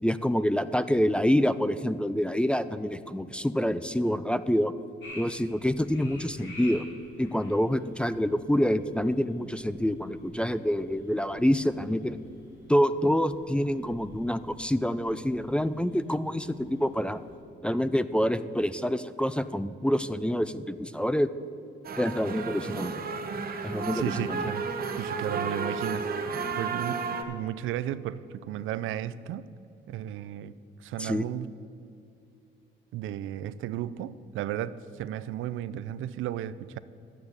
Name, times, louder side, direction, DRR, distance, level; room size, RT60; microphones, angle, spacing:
voice 1, 0.0-4.7 5.1-6.8 7.2-12.2 12.7-17.2 17.6-21.3 22.0-22.9 23.6-24.5 31.0-31.3, equal, 5° left, 14 dB, 0.4 m, -27 dB
sound 1, 5.0-17.4, left 1 dB, 70° left, 3.1 m, -51 dB
sound 2, 21.8-27.2, right 5 dB, 50° right, 1.0 m, -32 dB
voice 2, 23.9-24.6 25.0-29.5 29.9-30.6 30.8-31.5 32.9-36.8, right 11 dB, 85° right, 15 dB, 0.4 m, -34 dB
10.0 x 8.1 x 7.2 m, 2.6 s
cardioid pair, 90°, 20 cm